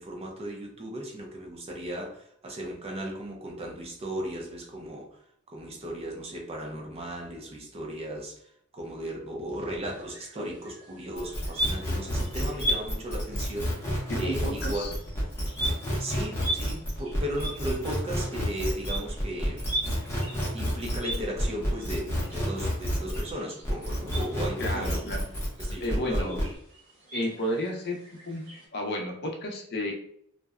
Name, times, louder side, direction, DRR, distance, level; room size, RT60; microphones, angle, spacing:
voice 1, 0.0-5.1 5.5-8.4 8.7-14.9 16.0-19.7 20.5-25.0 25.6-26.4, right 1 dB, 25° right, 1 dB, 0.4 m, -36 dB
sound 1, 9.9-28.7, right 1 dB, 70° right, 1.0 m, -39 dB
sound 2, 11.2-23.3 23.6-26.5, equal, 10° left, 0.6 m, -30 dB
voice 2, 14.1-14.9 24.6-25.2 25.8-26.4 27.1-28.0 28.3-28.4 28.7-29.9, left 1 dB, 50° left, 2 dB, 0.5 m, -32 dB
2.6 x 2.1 x 2.3 m, 0.69 s
head